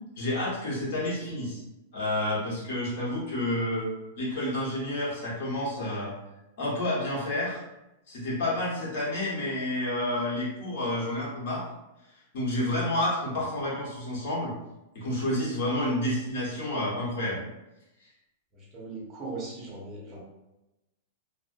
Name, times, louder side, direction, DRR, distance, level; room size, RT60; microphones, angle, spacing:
voice 1, 0.2-1.6 1.9-3.9 4.2-6.1 6.6-7.6 8.1-11.6 12.3-14.5 14.9-17.4, left 1 dB, 50° left, -6 dB, 1.1 m, -29 dB
voice 2, 18.5-20.2, right 3 dB, 20° right, -4 dB, 0.6 m, -39 dB
2.5 x 2.0 x 2.5 m, 0.96 s
supercardioid pair, 175°, 0 cm